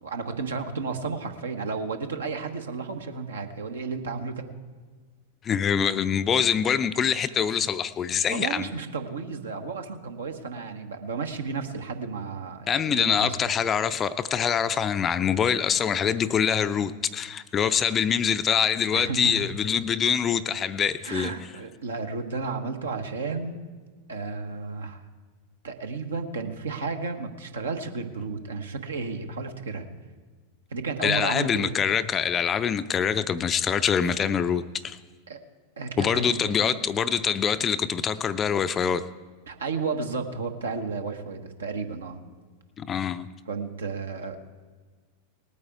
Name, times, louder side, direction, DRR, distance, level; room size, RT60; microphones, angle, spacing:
voice 1, 0.0-4.4 8.3-13.4 18.9-19.5 21.0-23.6 24.1-25.0 25.6-29.9 30.7-31.7 35.3-35.4 35.8-36.5 39.5-42.2 43.5-44.4, right 4 dB, 70° right, 1.2 m, -32 dB
voice 2, 5.4-8.7 12.7-21.3 31.0-35.0 36.0-39.1 42.8-43.3, left 7 dB, 25° left, 0.5 m, -25 dB
19.0 x 8.8 x 4.7 m
figure-of-eight pair, 90°, 0 cm